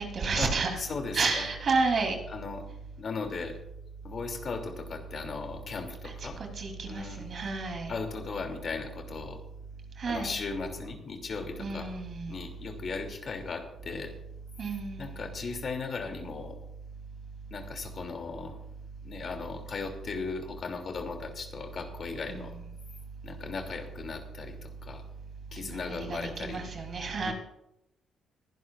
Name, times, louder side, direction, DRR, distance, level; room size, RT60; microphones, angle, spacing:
voice 1, 0.0-0.8 1.1-2.2 6.0-7.9 10.0-10.3 11.6-12.4 14.6-15.2 22.3-22.5 25.6-27.3, right 4 dB, 50° right, 3 dB, 3.2 m, -31 dB
voice 2, 0.8-1.5 2.3-2.6 3.0-3.6 4.0-6.4 6.8-7.3 7.9-9.4 10.1-11.9 12.3-14.1 15.0-16.6 17.5-18.6 19.0-22.5 23.2-25.0 25.5-26.6 27.2-27.3, left 4 dB, 50° left, 4 dB, 2.7 m, -37 dB
21.5 x 11.0 x 2.4 m, 0.85 s
cardioid pair, 90°, 0 cm